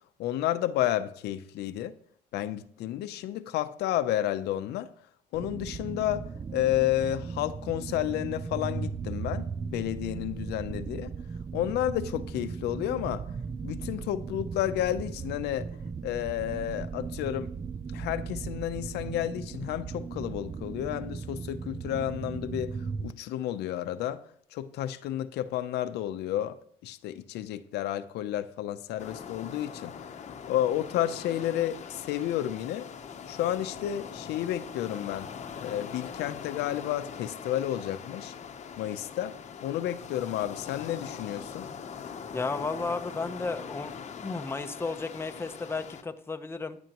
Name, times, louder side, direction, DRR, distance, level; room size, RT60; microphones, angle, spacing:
voice 1, 0.2-1.9 2.3-4.9 5.3-6.2 6.5-9.5 9.7-11.1 11.5-13.2 13.6-15.7 16.0-17.5 17.9-22.8 23.0-24.2 24.5-26.6 26.8-29.9 30.5-32.8 33.3-35.3 35.6-38.3 38.8-39.4 39.6-41.7, left 12 dB, 80° left, 0.7 m, -31 dB
sound 1, 5.3-23.1, right 5 dB, 20° right, 0.3 m, -37 dB
sound 2, 29.0-46.0, left 7 dB, 45° left, 1.0 m, -42 dB
voice 2, 42.3-43.9 44.2-46.8, left 3 dB, 15° left, 0.8 m, -33 dB
14.5 x 9.9 x 3.0 m
cardioid pair, 110°, 17 cm